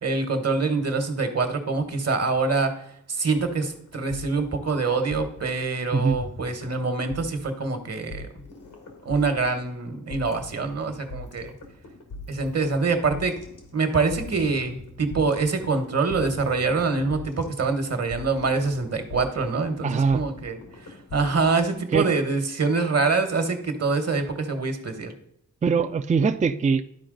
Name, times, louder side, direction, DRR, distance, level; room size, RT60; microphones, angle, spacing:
voice 1, 0.0-8.3 9.0-11.5 12.3-13.3 13.7-25.1, right 4 dB, 55° right, 7 dB, 1.3 m, -25 dB
sound 1, 3.4-5.7 6.1-21.7, left 2 dB, 90° left, 1.7 m, -42 dB
voice 2, 19.8-20.2 21.9-22.1 25.6-26.8, right 5 dB, 25° right, 8 dB, 0.4 m, -22 dB
11.5 x 4.5 x 3.8 m, 0.73 s
cardioid pair, 65°, 31 cm